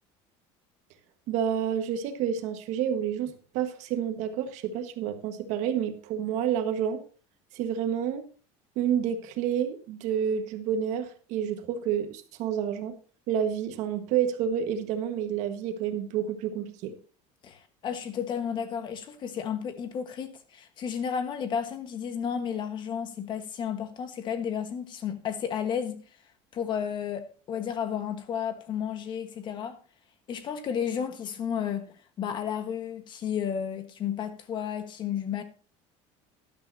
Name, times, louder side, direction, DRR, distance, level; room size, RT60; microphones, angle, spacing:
voice 1, 1.3-7.0 7.5-8.3 8.7-12.9 13.3-16.9, right 9 dB, 60° right, 1.5 m, -29 dB
voice 2, 17.4-26.0 26.5-29.8 30.3-31.9 32.2-35.4, left 8 dB, 35° left, 1.4 m, -32 dB
12.5 x 11.5 x 2.7 m
cardioid pair, 165°, 14 cm